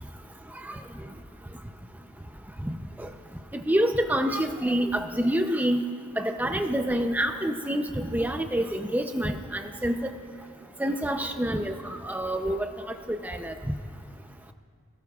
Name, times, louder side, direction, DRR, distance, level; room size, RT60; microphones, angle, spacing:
voice 1, 3.7-5.8 6.2-10.1 10.8-12.7 13.1-13.5, right 1 dB, 10° right, 5 dB, 0.6 m, -27 dB
26.5 x 18.0 x 2.4 m, 2.3 s
head